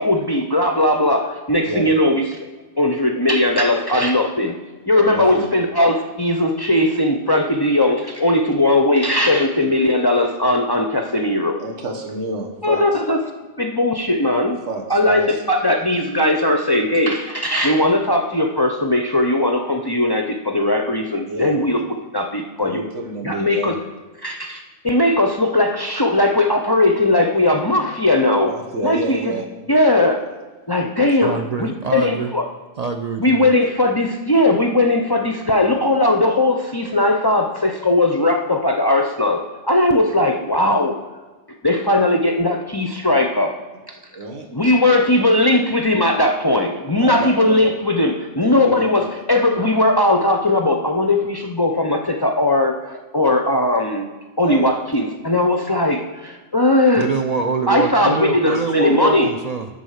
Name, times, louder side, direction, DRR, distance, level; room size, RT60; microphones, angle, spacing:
voice 1, 0.0-2.2 2.8-4.5 4.9-11.6 12.6-13.2 13.6-14.6 14.9-21.8 22.1-22.8 23.2-23.7 24.2-28.5 28.8-29.4 29.7-30.2 30.7-32.4 33.2-40.9 41.6-43.5 44.5-54.0 54.4-57.1 57.7-59.3, left 1 dB, 30° left, 3 dB, 0.4 m, -18 dB
voice 2, 4.9-5.5 9.6-9.8 11.6-13.0 14.7-15.4 21.3-21.5 22.6-23.7 28.3-29.5 44.1-44.5 47.0-47.7 48.4-48.9 54.4-54.7 57.0-57.1 58.5-58.9, right 2 dB, 85° right, 1 dB, 1.6 m, -29 dB
voice 3, 31.2-32.3 32.8-33.5 56.9-59.7, right 4 dB, 55° right, 5 dB, 0.4 m, -24 dB
11.0 x 4.1 x 6.4 m, 1.3 s
omnidirectional pair, 1.2 m